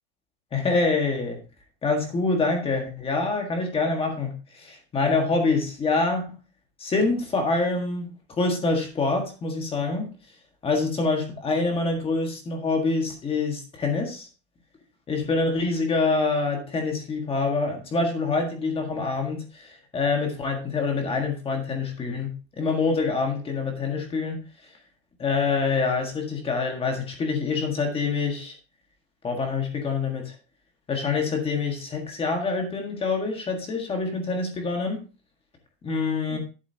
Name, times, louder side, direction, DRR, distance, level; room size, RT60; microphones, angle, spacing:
voice 1, 0.5-1.4 1.8-6.4 6.8-10.1 10.6-14.3 15.1-24.7 25.2-28.6 29.2-30.4 30.9-35.0 35.8-36.4, left 3 dB, 15° left, 3 dB, 1.6 m, -26 dB
11.0 x 8.2 x 2.8 m, 0.32 s
cardioid pair, 180°, 34 cm